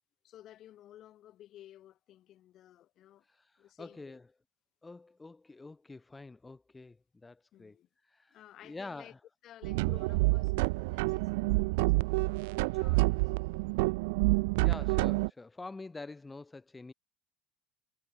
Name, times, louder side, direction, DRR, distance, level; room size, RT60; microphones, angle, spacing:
voice 1, 0.2-3.2 3.6-4.2 7.5-7.9 8.3-9.1 9.4-13.3, left 12 dB, 50° left, 6.3 m, -55 dB
voice 2, 3.8-4.2 4.8-7.0 7.2-7.8 8.1-8.4 8.6-9.2 14.6-16.9, left 3 dB, 15° left, 2.9 m, -46 dB
sound 1, 9.6-15.3, right 26 dB, 85° right, 0.4 m, -28 dB
supercardioid pair, 115°, 0 cm